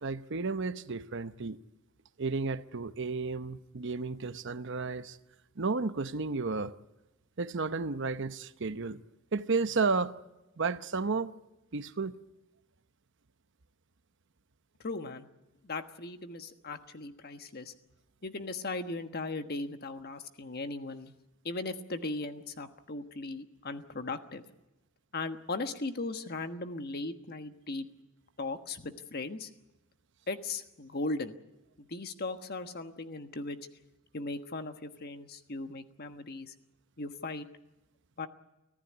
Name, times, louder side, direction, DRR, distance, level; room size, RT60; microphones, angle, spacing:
voice 1, 0.0-1.6 2.2-5.2 5.6-6.7 7.4-9.0 9.3-10.2 10.6-11.3 11.7-12.1, right 4 dB, 60° right, 0.8 m, -32 dB
voice 2, 14.8-15.3 15.6-17.7 18.2-21.1 21.4-24.4 25.1-27.9 28.4-29.5 30.3-31.4 31.8-33.6 34.1-36.5 37.0-37.5 38.2-38.3, left 3 dB, 45° left, 1.4 m, -38 dB
24.5 x 15.0 x 9.7 m
head